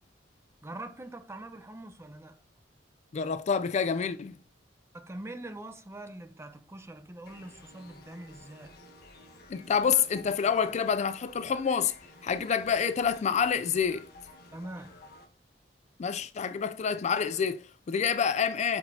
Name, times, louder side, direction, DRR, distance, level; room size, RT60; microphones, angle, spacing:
voice 1, 0.6-2.4 4.9-8.8 14.5-15.0, right 1 dB, 15° right, 0.6 m, -43 dB
voice 2, 3.1-4.4 9.5-11.9 12.2-14.1 16.0-18.8, left 6 dB, 40° left, 0.3 m, -27 dB
sound 1, 7.2-15.2, left 2 dB, 55° left, 1.3 m, -53 dB
7.9 x 5.0 x 2.7 m
head